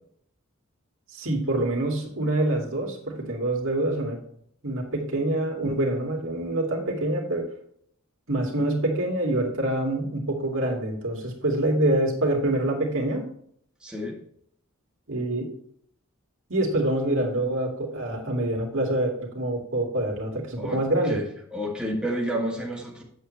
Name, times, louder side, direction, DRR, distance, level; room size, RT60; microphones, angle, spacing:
voice 1, 1.1-4.2 4.6-7.5 8.3-13.3 15.1-15.5 16.5-21.2, right 1 dB, 65° right, 0 dB, 2.5 m, -26 dB
voice 2, 13.8-14.2 20.6-20.8 21.0-21.2 21.5-23.0, equal, 5° right, -3 dB, 1.7 m, -30 dB
8.2 x 8.0 x 3.3 m, 0.66 s
head